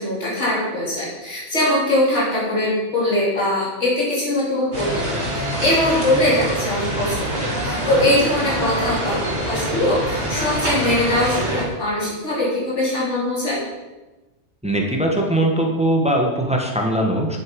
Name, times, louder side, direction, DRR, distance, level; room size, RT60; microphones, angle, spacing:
voice 1, 0.0-5.0 5.3-13.7, left 1 dB, 70° left, -6 dB, 3.7 m, -21 dB
sound 1, 4.7-11.6, equal, 40° right, 3.3 m, -25 dB
voice 2, 14.6-17.4, right 1 dB, 5° right, 0 dB, 1.4 m, -20 dB
10.0 x 8.2 x 5.3 m, 1.1 s
omnidirectional pair, 1.3 m